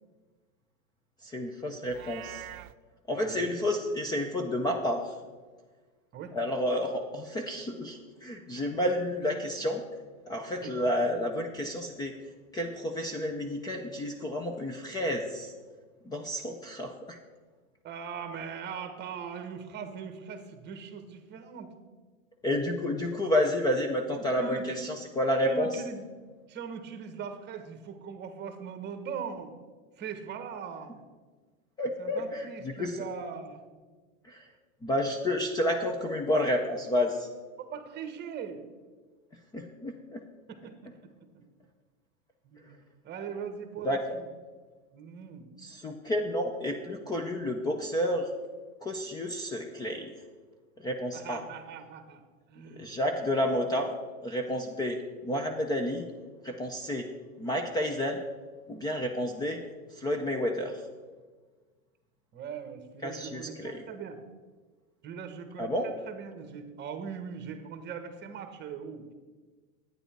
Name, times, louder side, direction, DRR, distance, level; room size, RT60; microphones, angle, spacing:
voice 1, 1.2-2.4 3.1-5.1 6.3-9.8 10.3-12.1 12.5-15.5 16.0-17.2 22.4-25.8 31.8-33.0 34.2-34.5 34.8-37.3 39.5-40.2 43.8-44.0 45.6-48.3 48.8-50.1 50.8-51.4 52.7-53.9 54.2-56.1 56.4-57.1 57.4-58.2 58.7-59.6 59.9-60.8 63.0-63.8 65.6-65.9, left 1 dB, 10° left, 3 dB, 0.5 m, -30 dB
Livestock farm animals working animals, 1.8-2.7, right 14 dB, 90° right, 0.6 m, -43 dB
voice 2, 3.1-3.5 6.1-6.3 10.6-10.7 17.8-21.7 24.2-24.8 25.4-26.0 26.5-29.5 30.0-31.0 32.0-33.9 37.6-38.6 40.5-40.7 41.3-41.4 42.4-42.7 43.0-44.2 44.9-45.5 51.1-52.2 52.5-53.1 62.3-64.2 65.0-69.1, right 6 dB, 25° right, 8 dB, 1.3 m, -40 dB
11.0 x 9.3 x 4.5 m, 1.4 s
hypercardioid pair, 130°, 41 cm